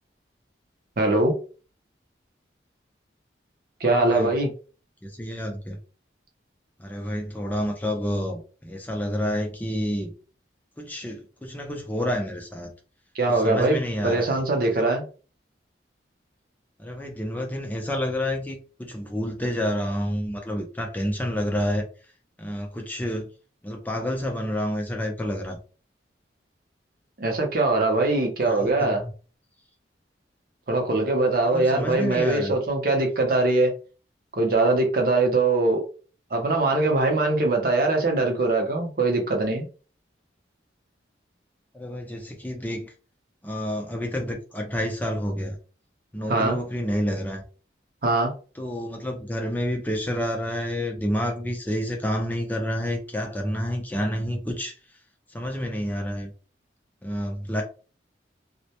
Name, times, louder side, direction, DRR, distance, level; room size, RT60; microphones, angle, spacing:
voice 1, 1.0-1.3 3.8-4.5 13.1-15.1 27.2-29.0 30.7-33.7 34.3-35.8 36.3-39.7 46.3-46.6 48.0-48.3, right 2 dB, 50° right, 0.6 m, -22 dB
voice 2, 3.8-4.3 5.0-5.8 6.8-10.1 10.8-12.7 13.3-14.4 16.8-21.8 22.4-23.3 23.6-25.6 28.4-29.1 31.4-32.5 41.7-42.9 43.4-45.6 46.1-47.4 48.6-54.8 55.3-56.3 57.0-57.6, equal, 10° left, 0.4 m, -29 dB
2.1 x 2.1 x 2.8 m
head